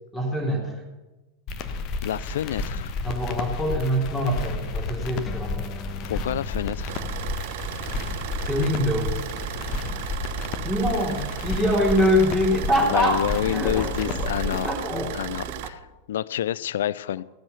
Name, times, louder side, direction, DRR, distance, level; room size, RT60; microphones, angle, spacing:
voice 1, 0.1-0.8 3.0-5.8 8.4-9.2 10.6-15.1, equal, ahead, -5 dB, 3.5 m, -24 dB
sound 1, 1.5-14.7, left 3 dB, 40° left, 1.1 m, -32 dB
voice 2, 2.0-3.0 6.0-7.0 12.9-14.7 15.1-15.8 16.1-17.2, left 11 dB, 60° left, 21 dB, 0.4 m, -28 dB
sound 2, 5.3-12.1, left 4 dB, 20° left, 1.1 m, -44 dB
Car / Idling, 6.9-15.7, right 13 dB, 50° right, 0.7 m, -35 dB
17.5 x 8.0 x 7.0 m, 1.1 s
figure-of-eight pair, 90°, 0 cm